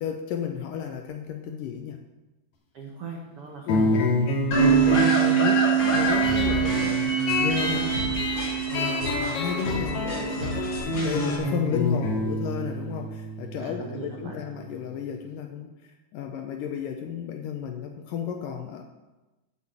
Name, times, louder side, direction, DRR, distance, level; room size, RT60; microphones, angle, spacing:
voice 1, 0.0-2.0 3.7-3.9 4.6-7.8 8.4-18.8, left 8 dB, 75° left, 4 dB, 2.1 m, -33 dB
voice 2, 2.7-4.0 7.6-8.6 13.6-14.4, right 4 dB, 70° right, 0 dB, 1.3 m, -39 dB
sound 1, 3.7-14.8, left 2 dB, 50° left, 2.2 m, -29 dB
sound 2, 4.5-11.4, left 2 dB, 30° left, 3.7 m, -29 dB
Bass guitar, 4.5-10.8, right 11 dB, 45° right, 3.2 m, -25 dB
9.9 x 8.5 x 7.3 m, 1.1 s
omnidirectional pair, 4.7 m